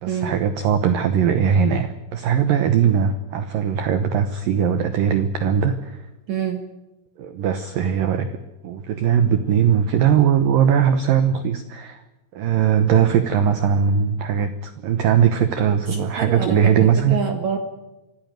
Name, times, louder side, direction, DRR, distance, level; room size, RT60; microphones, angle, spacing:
voice 1, 0.0-6.0 7.2-8.4 8.6-12.0 12.4-17.2, right 8 dB, 80° right, 10 dB, 2.0 m, -20 dB
voice 2, 6.3-6.6 15.9-17.6, right 7 dB, 65° right, 5 dB, 1.8 m, -27 dB
26.0 x 16.0 x 9.3 m, 1.0 s
omnidirectional pair, 5.6 m